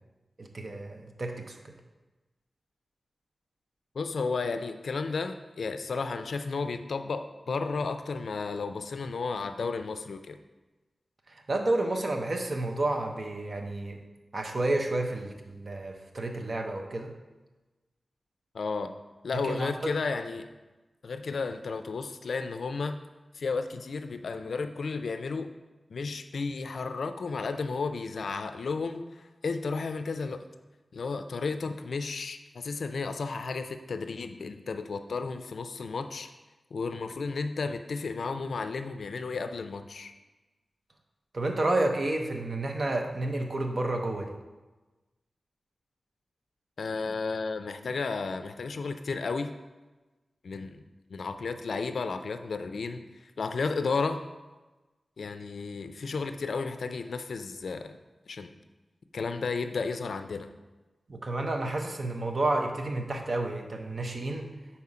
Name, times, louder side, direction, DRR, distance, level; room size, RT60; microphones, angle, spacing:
voice 1, 0.4-1.5 11.5-14.0 14.3-17.1 19.4-19.7 41.3-44.3 61.1-64.5, right 2 dB, 45° right, 3 dB, 0.7 m, -30 dB
voice 2, 3.9-10.4 18.5-18.9 19.2-20.5 21.0-23.0 23.3-25.5 25.9-30.4 30.9-36.3 36.7-40.1 46.8-49.5 50.4-50.8 51.1-53.0 53.4-54.2 55.2-58.0 58.3-58.5 59.1-60.5, left 4 dB, 80° left, 9 dB, 0.4 m, -33 dB
5.6 x 4.3 x 4.8 m, 1.2 s
wide cardioid pair, 125°, 0 cm